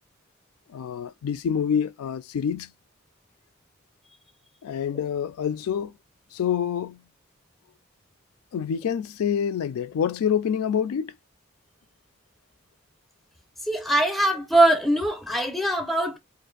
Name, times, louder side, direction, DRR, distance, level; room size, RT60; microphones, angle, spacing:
voice 1, 0.7-2.7 4.6-5.9 6.3-7.0 8.5-11.1, left 8 dB, 85° left, 0.3 m, -27 dB
voice 2, 13.7-16.2, right 1 dB, ahead, 0.5 m, -22 dB
2.5 x 2.5 x 3.8 m
head